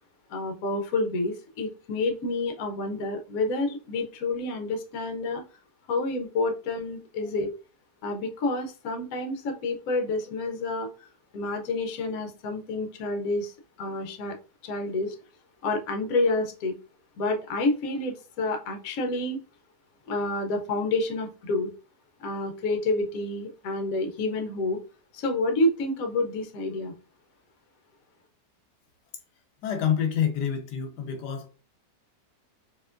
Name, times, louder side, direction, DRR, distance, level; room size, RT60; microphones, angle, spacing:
voice 1, 0.3-5.4 5.9-7.5 8.0-10.9 11.3-13.5 13.8-14.3 14.6-15.1 15.6-16.7 17.2-19.4 20.1-21.7 22.2-24.8 25.1-26.9, left 2 dB, 65° left, 1.1 m, -28 dB
voice 2, 29.6-31.5, left 8 dB, 85° left, 1.2 m, -27 dB
4.5 x 2.9 x 2.5 m
omnidirectional pair, 1.8 m